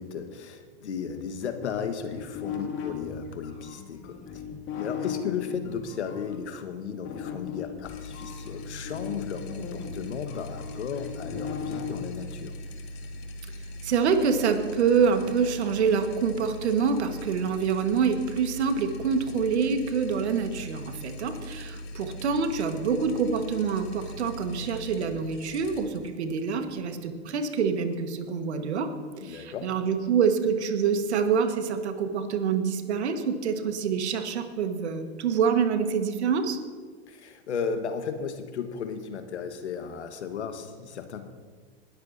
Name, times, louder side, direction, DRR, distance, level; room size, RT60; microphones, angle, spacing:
voice 1, 0.0-4.4 4.8-12.5 29.2-29.7 37.1-41.3, left 6 dB, 80° left, 8 dB, 1.4 m, -35 dB
sound 1, 1.6-6.3 7.0-11.9, left 7 dB, 35° left, 2.2 m, -37 dB
sound 2, 7.8-27.1, left 1 dB, 60° left, 2.1 m, -41 dB
voice 2, 13.8-28.9 29.2-36.6, right 6 dB, 75° right, 7 dB, 1.5 m, -26 dB
20.0 x 13.0 x 2.7 m, 1.5 s
hypercardioid pair, 105°, 34 cm